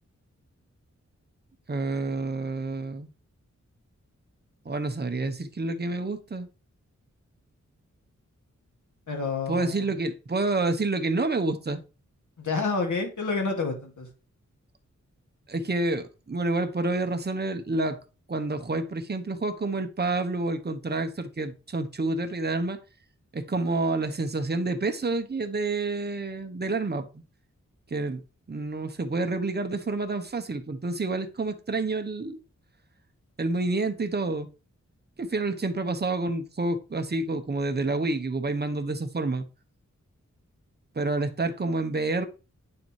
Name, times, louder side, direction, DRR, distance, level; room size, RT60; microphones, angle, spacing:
voice 1, 1.7-3.1 4.6-6.5 9.5-11.8 15.5-18.0 18.3-22.8 23.3-27.2 27.9-28.2 28.5-32.4 33.4-34.5 35.2-39.4 40.9-42.3, right 2 dB, 35° right, 1.0 m, -28 dB
voice 2, 9.1-9.8 12.4-14.1, left 4 dB, 85° left, 2.3 m, -29 dB
9.7 x 6.9 x 3.3 m
wide cardioid pair, 95°, 29 cm